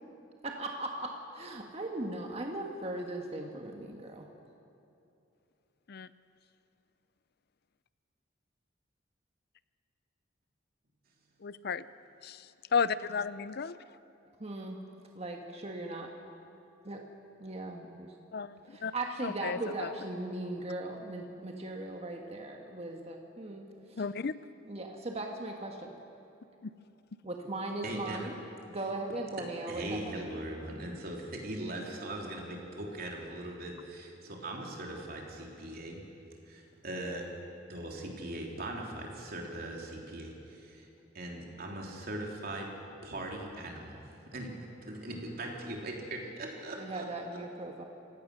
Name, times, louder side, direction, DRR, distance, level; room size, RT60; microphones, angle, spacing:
voice 1, 0.4-4.3 14.4-14.8 15.2-16.1 16.8-17.0 17.4-18.1 18.6-24.1 24.7-25.9 27.2-28.4 28.7-30.3 46.8-47.8, right 2 dB, 35° right, 2 dB, 1.6 m, -38 dB
voice 2, 11.4-11.8 12.2-12.4 12.7-13.8 18.3-18.9 19.2-19.9 24.0-24.3 26.6-26.7, left 5 dB, 55° left, 16 dB, 0.5 m, -33 dB
voice 3, 27.8-28.3 29.7-36.0 36.5-37.3 37.7-40.9 41.1-42.7 43.0-47.4, right 1 dB, 55° right, 0 dB, 3.4 m, -40 dB
27.0 x 17.0 x 6.7 m, 2.8 s
head